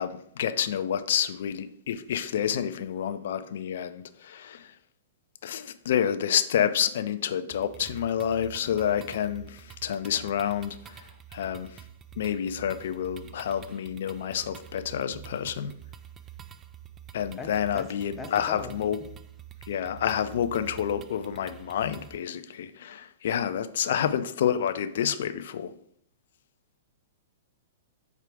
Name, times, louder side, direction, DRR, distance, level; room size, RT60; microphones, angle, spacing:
voice 1, 0.0-4.7 5.4-11.8 12.2-15.7 17.1-19.0 19.7-25.7, left 9 dB, 65° left, 0.4 m, -29 dB
sound 1, 7.5-22.2, right 10 dB, 25° right, 0.3 m, -47 dB
voice 2, 18.2-18.7 23.8-24.0, left 4 dB, 15° left, 0.6 m, -39 dB
4.5 x 2.5 x 4.8 m
hypercardioid pair, 115°, 0 cm